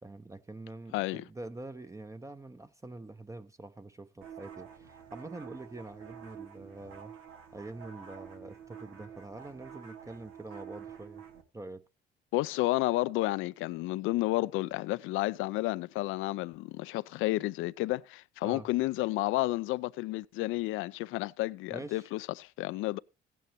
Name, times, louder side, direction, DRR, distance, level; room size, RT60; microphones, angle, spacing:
voice 1, 0.0-7.1 7.5-11.2 11.5-11.8 18.4-18.7 21.7-22.1, right 2 dB, 15° right, 0.7 m, -45 dB
voice 2, 0.9-1.2 12.3-23.0, left 18 dB, 80° left, 0.5 m, -31 dB
sound 1, 4.2-11.4, right 8 dB, 85° right, 1.5 m, -48 dB
15.5 x 9.3 x 3.0 m
supercardioid pair, 70°, 21 cm